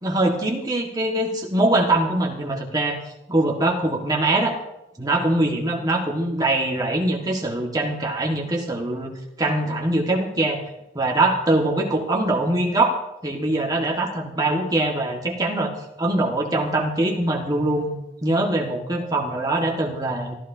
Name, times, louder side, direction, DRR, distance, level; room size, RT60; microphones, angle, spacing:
voice 1, 0.0-3.0 3.3-4.6 5.0-9.1 9.4-10.6 10.9-13.0 13.2-15.7 16.0-17.9 18.2-20.3, right 2 dB, 20° right, 0 dB, 1.6 m, -22 dB
26.5 x 12.5 x 2.7 m, 0.90 s
head